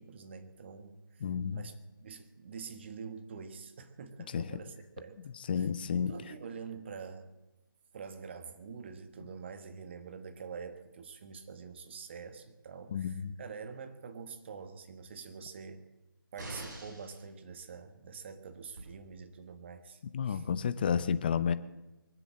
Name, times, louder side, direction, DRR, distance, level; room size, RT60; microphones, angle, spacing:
voice 1, 0.0-1.2 1.5-5.2 5.6-5.7 5.9-7.3 7.9-15.9 16.3-20.5, right 5 dB, 30° right, 9 dB, 1.3 m, -46 dB
voice 2, 1.2-1.6 4.3-4.5 5.5-6.1 12.9-13.3 20.1-21.5, left 7 dB, 25° left, 13 dB, 0.7 m, -31 dB
sound 1, 16.4-17.2 18.8-18.9, right 2 dB, 50° right, 6.6 m, -43 dB
23.0 x 8.0 x 7.6 m, 1.0 s
figure-of-eight pair, 160°, 12 cm